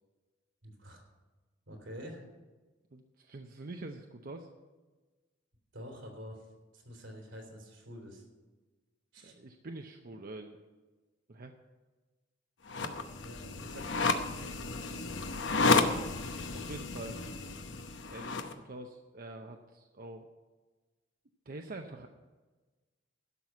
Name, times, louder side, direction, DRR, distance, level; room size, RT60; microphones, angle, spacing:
voice 1, 0.6-1.0 1.7-2.3 5.7-6.5 6.7-8.2 9.1-9.3 13.2-15.2, equal, 85° right, 1 dB, 3.1 m, -48 dB
voice 2, 2.9-4.5 9.2-10.6 11.3-11.6 12.8-13.0 15.5-17.2 18.1-20.3 21.5-22.1, right 2 dB, 50° right, 4 dB, 0.7 m, -45 dB
sound 1, 12.7-18.5, left 3 dB, 70° left, 0.9 m, -32 dB
12.0 x 6.1 x 8.2 m, 1.3 s
head